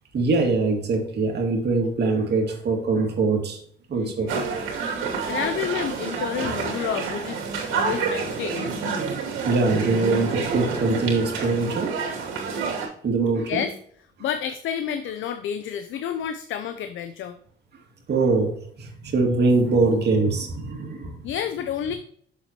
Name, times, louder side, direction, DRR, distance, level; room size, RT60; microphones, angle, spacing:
voice 1, 0.1-3.6 3.9-4.3 9.5-11.9 12.5-12.7 13.0-13.6 18.1-21.3, right 3 dB, 55° right, 2.1 m, -23 dB
voice 2, 3.9-4.4 5.3-7.4 7.7-8.8 13.5-13.7 14.2-17.4 21.2-21.9, left 9 dB, 75° left, 0.7 m, -30 dB
sound 1, 4.3-12.9, right 5 dB, 85° right, 2.8 m, -28 dB
7.2 x 7.1 x 2.9 m
cardioid pair, 90°, 20 cm